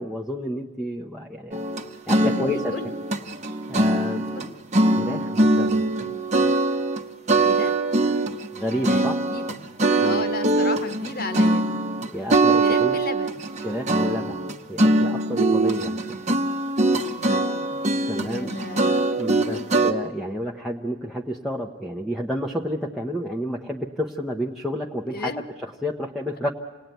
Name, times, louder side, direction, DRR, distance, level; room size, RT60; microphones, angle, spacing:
voice 1, 0.0-1.6 2.1-2.8 3.7-4.5 4.9-5.8 8.5-9.2 10.0-10.2 12.1-13.0 13.6-14.4 14.7-16.1 18.1-18.5 19.2-25.3 25.6-26.5, equal, ahead, -1 dB, 0.9 m, -30 dB
sound 1, 1.5-4.5 4.7-7.0 7.3-19.9, right 2 dB, 35° right, 1.2 m, -22 dB
voice 2, 2.2-2.9 4.1-4.5 7.4-7.7 8.8-9.6 10.0-11.8 12.6-13.5 17.1-17.9 18.1-19.0 19.3-19.7 25.1-25.5, left 3 dB, 50° left, 10 dB, 1.4 m, -35 dB
28.0 x 19.0 x 9.2 m, 1.4 s
head